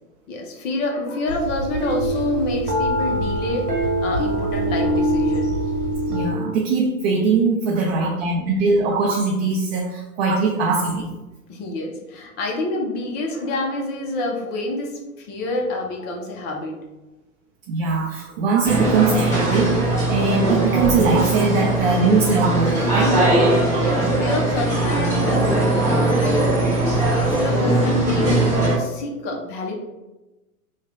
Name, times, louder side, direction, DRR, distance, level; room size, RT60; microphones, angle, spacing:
voice 1, 0.3-5.6 7.8-8.5 11.5-16.8 21.4-21.8 23.7-26.6 27.1-29.7, left 2 dB, 25° left, 0 dB, 0.5 m, -28 dB
sound 1, 1.3-6.3, right 1 dB, 80° right, 1.3 m, -23 dB
voice 2, 6.1-11.1 17.7-23.2, right 4 dB, 45° right, -1 dB, 0.5 m, -21 dB
sound 2, 18.6-28.8, right 2 dB, 5° left, 1.2 m, -20 dB
3.2 x 2.2 x 3.6 m, 1.0 s
hypercardioid pair, 115°, 45 cm